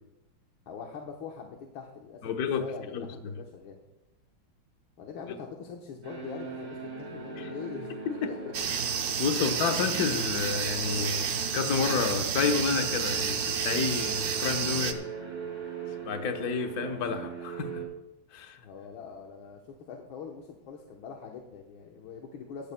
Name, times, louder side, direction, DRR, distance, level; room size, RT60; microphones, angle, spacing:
voice 1, 0.7-3.8 5.0-8.5 9.4-9.5 18.6-22.7, left 6 dB, 80° left, 1 dB, 1.9 m, -42 dB
voice 2, 2.2-2.6 2.9-3.3 7.4-7.5 8.2-8.3 9.2-15.0 16.0-17.8 18.3-18.6, left 6 dB, 55° left, 5 dB, 1.4 m, -30 dB
sound 1, 6.0-17.8, right 5 dB, 20° right, 3.4 m, -40 dB
sound 2, 8.5-14.9, right 7 dB, 55° right, 1.2 m, -30 dB
18.0 x 13.5 x 2.2 m, 0.98 s
omnidirectional pair, 2.2 m